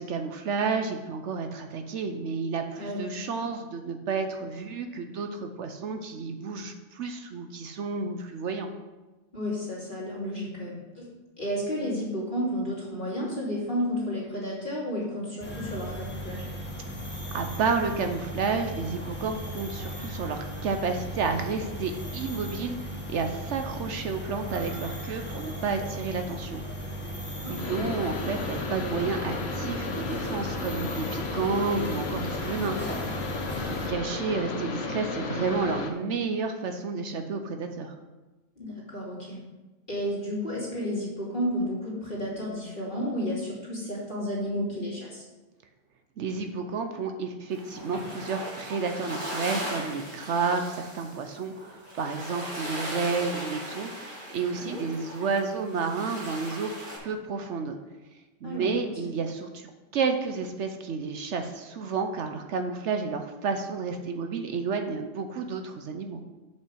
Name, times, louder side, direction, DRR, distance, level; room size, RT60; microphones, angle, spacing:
voice 1, 0.0-8.7 17.3-26.6 27.5-32.8 33.6-37.9 46.2-53.9 54.3-56.7 57.0-57.7 58.4-66.2, right 4 dB, 65° right, 6 dB, 1.0 m, -31 dB
voice 2, 9.3-11.1 11.4-16.5 27.4-27.9 31.0-31.1 38.6-39.4 39.9-45.2 54.5-54.9 58.4-58.9, equal, 40° left, -6 dB, 2.9 m, -32 dB
sound 1, 15.4-33.9, equal, 10° left, 1.3 m, -37 dB
sound 2, 27.5-35.9, left 4 dB, 60° left, 1.1 m, -34 dB
sound 3, 47.5-57.0, equal, 45° right, 3.2 m, -38 dB
6.6 x 5.6 x 6.2 m, 1.1 s
omnidirectional pair, 1.3 m